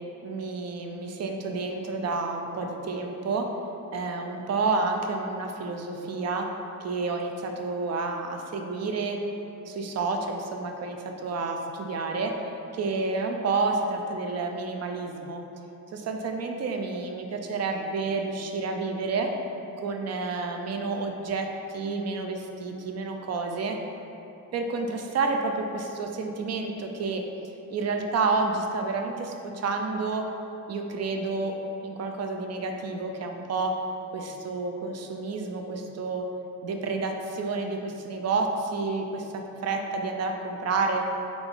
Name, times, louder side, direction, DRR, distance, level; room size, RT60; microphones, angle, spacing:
voice 1, 0.2-3.5 3.9-6.5 6.8-9.2 9.7-11.0 11.2-12.3 12.7-15.4 15.9-19.3 19.8-23.8 24.5-27.2 27.7-30.2 30.7-31.6 31.8-33.7 34.1-36.2 36.6-39.3 39.6-41.1, right 3 dB, 50° right, 3 dB, 0.5 m, -29 dB
3.7 x 3.4 x 3.8 m, 2.9 s
cardioid pair, 130°, 34 cm